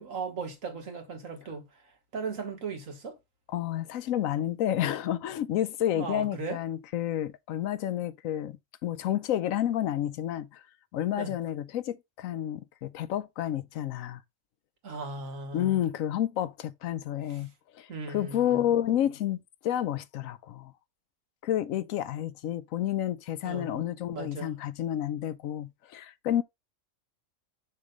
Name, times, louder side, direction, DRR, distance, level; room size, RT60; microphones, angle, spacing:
voice 1, 0.0-1.6 2.1-3.2 6.0-6.6 11.2-11.4 14.8-15.8 17.3-17.4 17.9-18.6 23.4-23.8 24.1-24.6, right 4 dB, 80° right, 2.0 m, -37 dB
voice 2, 3.5-10.6 10.9-14.2 15.5-20.7 21.4-26.4, left 11 dB, 85° left, 1.0 m, -30 dB
6.6 x 3.2 x 5.2 m
omnidirectional pair, 1.4 m